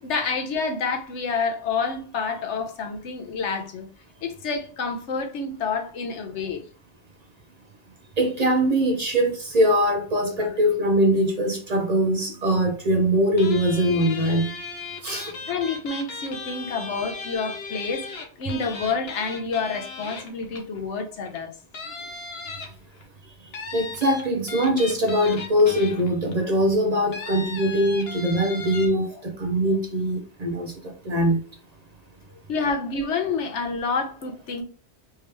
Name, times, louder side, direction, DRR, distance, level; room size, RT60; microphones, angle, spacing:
voice 1, 0.0-3.9 4.2-6.6 10.4-10.5 15.5-18.1 18.4-21.5 32.5-34.6, left 4 dB, 85° left, 1.1 m, -28 dB
voice 2, 8.2-14.5 15.0-15.4 23.7-30.7 31.0-31.4, equal, 45° right, 0.6 m, -22 dB
sound 1, 13.4-20.8 21.3-21.4 21.7-23.0 23.5-26.3 27.1-28.9, left 3 dB, 65° left, 1.0 m, -37 dB
3.6 x 3.0 x 3.3 m
omnidirectional pair, 1.2 m